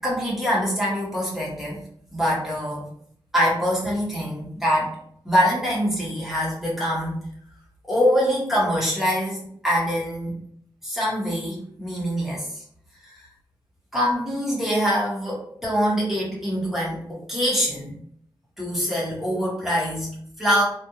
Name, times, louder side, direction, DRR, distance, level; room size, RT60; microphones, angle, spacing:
voice 1, 0.0-1.8 2.1-2.9 3.3-4.9 5.2-7.2 7.9-10.4 10.8-12.6 13.0-13.1 13.9-17.9 18.6-20.6, equal, 5° right, -6 dB, 1.5 m, -24 dB
3.3 x 2.5 x 2.8 m, 0.66 s
wide cardioid pair, 100°, 9 cm